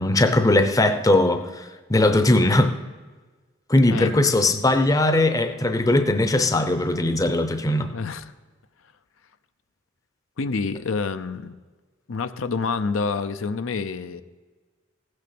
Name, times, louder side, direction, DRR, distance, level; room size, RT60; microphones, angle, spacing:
voice 1, 0.0-2.7 3.7-7.9, left 2 dB, 15° left, 8 dB, 0.6 m, -20 dB
voice 2, 7.9-8.2 10.4-11.5 12.1-14.2, left 4 dB, 75° left, 10 dB, 0.6 m, -27 dB
15.5 x 6.4 x 6.0 m, 1.4 s
head